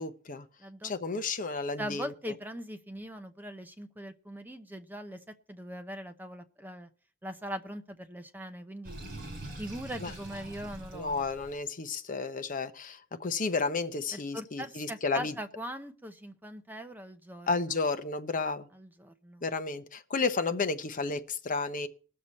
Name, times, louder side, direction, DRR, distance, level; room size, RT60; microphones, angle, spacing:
voice 1, 0.0-0.4 0.8-2.1 10.0-10.1 10.9-15.3 17.5-18.7 19.4-21.9, left 4 dB, 40° left, 0.8 m, -32 dB
voice 2, 0.6-1.2 1.8-5.2 5.5-6.9 7.2-8.9 9.6-11.2 14.1-17.8 18.7-19.4, equal, 10° right, 0.7 m, -41 dB
Sink (filling or washing), 8.8-11.6, right 1 dB, 45° right, 4.1 m, -44 dB
20.0 x 6.7 x 4.2 m
head